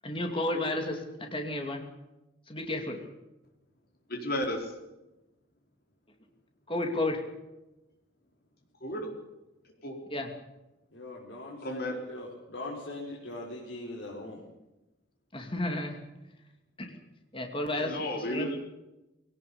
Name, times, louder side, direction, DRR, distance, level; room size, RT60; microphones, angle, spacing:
voice 1, 0.0-1.9 2.5-3.0 6.7-7.2 10.1-10.3 15.3-16.0 16.8-17.0 17.3-18.0 18.3-18.5, left 1 dB, 30° left, 3 dB, 2.7 m, -32 dB
voice 2, 4.1-4.7 8.8-9.1 9.8-10.0 11.6-12.0 17.7-18.6, left 1 dB, 55° left, 2 dB, 4.4 m, -33 dB
voice 3, 10.9-14.4, left 2 dB, 75° left, -3 dB, 4.2 m, -41 dB
21.5 x 18.0 x 7.1 m, 0.98 s
head